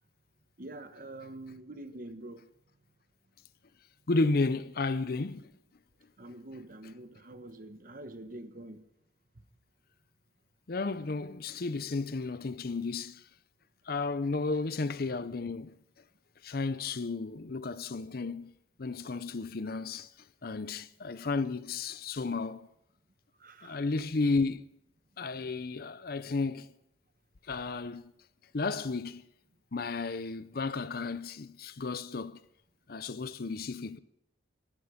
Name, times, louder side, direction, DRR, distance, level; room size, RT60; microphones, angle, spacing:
voice 1, 0.6-2.4 6.2-8.8 23.4-23.8, right 1 dB, 50° right, 1.2 m, -45 dB
voice 2, 4.1-5.4 10.7-13.2 13.9-15.7 16.4-18.5 18.8-20.1 20.4-22.7 23.6-24.6 25.2-26.7 27.5-28.0 28.5-29.2 29.7-32.4 32.9-34.0, left 3 dB, 55° left, 0.6 m, -33 dB
17.0 x 14.0 x 5.2 m
head